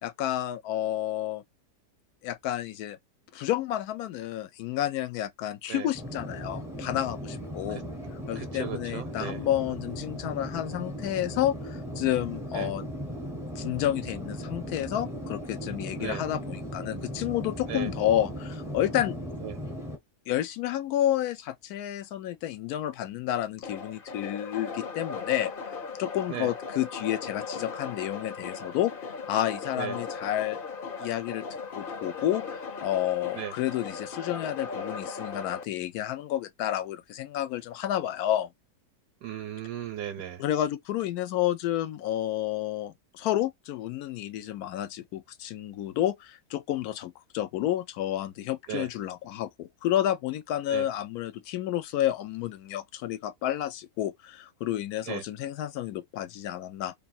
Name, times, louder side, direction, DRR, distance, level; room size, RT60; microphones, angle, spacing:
voice 1, 0.0-1.4 2.2-3.0 3.3-7.8 8.3-12.8 13.6-19.2 20.3-28.9 29.3-30.6 31.0-31.4 31.7-32.4 32.8-38.5 40.4-56.9, left 12 dB, 75° left, 1.0 m, -30 dB
sound 1, 5.9-20.0, equal, 5° right, 0.6 m, -37 dB
voice 2, 8.3-9.4 12.5-12.7 16.0-16.2 17.7-17.9 19.4-19.6 26.3-26.5 29.8-30.0 33.3-33.5 39.2-40.4 48.7-48.9 50.7-50.9 55.1-55.2, right 11 dB, 80° right, 1.1 m, -36 dB
sound 2, 23.6-35.6, left 5 dB, 50° left, 0.6 m, -38 dB
2.7 x 2.7 x 4.1 m
omnidirectional pair, 1.7 m